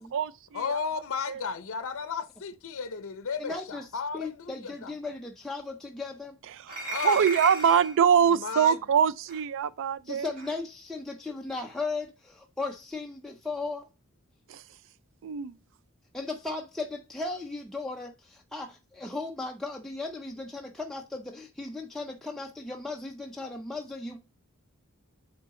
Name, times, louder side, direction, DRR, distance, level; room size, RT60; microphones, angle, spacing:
voice 1, 0.0-0.8 1.3-1.4 6.5-10.3 14.5-14.6 15.2-15.5, right 7 dB, 60° right, 0.3 m, -24 dB
voice 2, 0.5-4.9 6.9-7.2 8.3-8.7, left 5 dB, 60° left, 0.6 m, -34 dB
voice 3, 3.4-6.4 10.0-13.9 16.1-24.2, left 3 dB, ahead, 0.4 m, -36 dB
sound 1, 6.7-8.0 9.3-9.4 10.4-10.5, right 2 dB, 40° right, 1.5 m, -35 dB
8.7 x 3.8 x 3.7 m
head